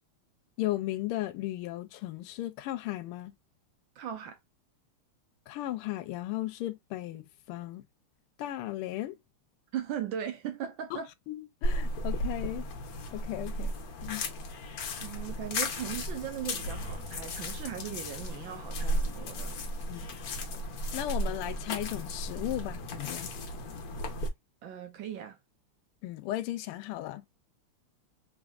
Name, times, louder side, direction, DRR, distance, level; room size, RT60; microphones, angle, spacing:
voice 1, 0.6-3.3 5.5-7.8 8.4-9.2 10.9-11.0 11.3-12.7 13.1-13.7 14.0-14.3 19.9-20.1 20.9-23.3 26.0-27.2, left 15 dB, 80° left, 1.5 m, -35 dB
voice 2, 4.0-4.4 9.7-11.1 15.0-19.6 24.6-25.4, right 9 dB, 75° right, 1.3 m, -38 dB
sound 1, 11.6-24.3, equal, 60° left, 1.0 m, -35 dB
3.5 x 3.5 x 2.3 m
omnidirectional pair, 2.4 m